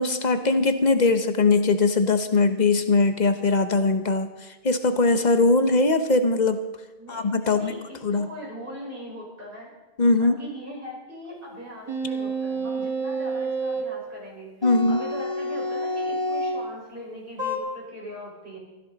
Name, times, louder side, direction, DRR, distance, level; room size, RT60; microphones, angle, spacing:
voice 1, 0.0-6.6 7.1-7.7 8.0-8.3 10.0-10.3 14.6-15.0, left 3 dB, 45° left, 9 dB, 1.0 m, -21 dB
voice 2, 7.0-9.7 10.2-18.6, equal, 60° right, -3 dB, 5.2 m, -40 dB
sound 1, 11.9-13.9 14.6-16.6 17.4-17.6, right 1 dB, 25° right, 1.4 m, -28 dB
16.5 x 14.0 x 4.0 m, 1.1 s
omnidirectional pair, 1.0 m